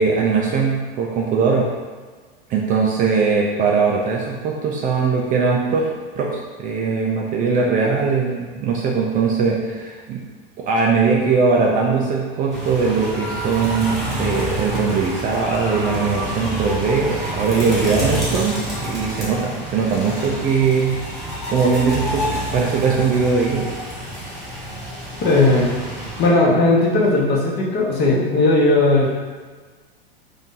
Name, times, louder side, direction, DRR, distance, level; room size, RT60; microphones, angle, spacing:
voice 1, 0.0-1.7 2.5-5.9 6.2-6.3 6.6-10.2 10.6-21.0 21.5-23.6, right 5 dB, 30° right, -2 dB, 0.4 m, -20 dB
sound 1, 12.5-26.3, right 1 dB, ahead, 1.2 m, -28 dB
voice 2, 25.2-25.7 26.2-29.2, left 2 dB, 35° left, -3 dB, 0.9 m, -17 dB
2.8 x 2.7 x 3.6 m, 1.4 s
hypercardioid pair, 115°, 29 cm